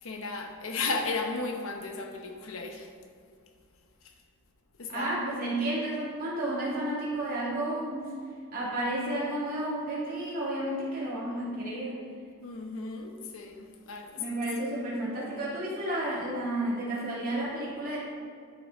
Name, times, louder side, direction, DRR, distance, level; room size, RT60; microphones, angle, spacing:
voice 1, 0.0-2.9 4.8-5.1 12.4-14.2, left 3 dB, 65° left, 4 dB, 1.0 m, -34 dB
voice 2, 4.9-8.1 8.5-12.0 14.2-18.0, right 1 dB, 40° right, -7 dB, 2.5 m, -32 dB
9.9 x 6.5 x 4.7 m, 2.2 s
head